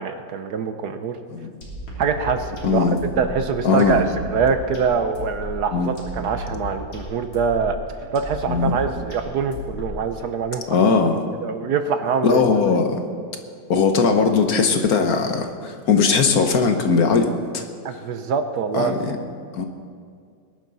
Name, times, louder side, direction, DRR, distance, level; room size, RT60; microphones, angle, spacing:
voice 1, 0.0-1.2 2.0-7.8 8.1-10.8 11.4-12.4 17.8-18.9, right 6 dB, 65° right, 8 dB, 1.2 m, -24 dB
sound 1, 1.6-10.2, left 1 dB, 85° left, 3.7 m, -34 dB
voice 2, 2.6-3.0 3.6-4.0 5.7-5.9 8.5-8.7 10.7-11.2 12.2-13.0 13.7-17.3 17.5-17.6 18.7-19.2 19.6-19.7, left 5 dB, 60° left, 5 dB, 1.4 m, -19 dB
21.0 x 11.0 x 4.0 m, 2.2 s
omnidirectional pair, 2.0 m